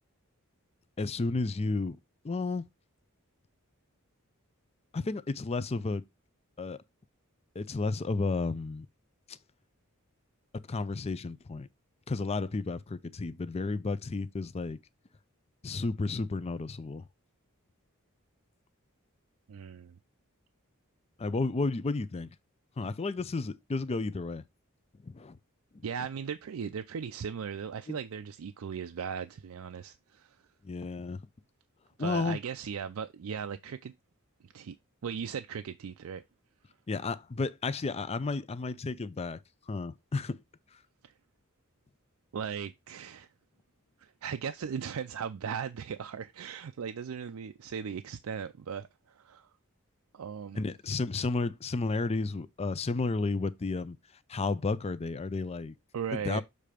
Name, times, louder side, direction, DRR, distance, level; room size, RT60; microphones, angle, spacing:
voice 1, 1.0-2.0 2.2-2.6 4.9-6.0 6.6-6.8 7.6-8.9 9.3-9.4 10.7-11.7 12.1-14.8 15.6-17.0 21.2-22.3 22.8-24.4 25.0-25.4 27.9-28.0 30.6-31.2 32.0-32.4 36.9-39.4 39.7-40.4 50.5-54.0 54.3-55.7 56.1-56.4, left 3 dB, 30° left, 0.4 m, -32 dB
voice 2, 19.5-19.9 25.8-30.4 32.0-33.9 34.5-34.7 35.0-36.2 41.0-41.1 42.3-43.3 44.0-49.5 50.1-50.6 55.9-56.4, right 7 dB, 85° right, 0.4 m, -37 dB
6.7 x 3.3 x 4.9 m
head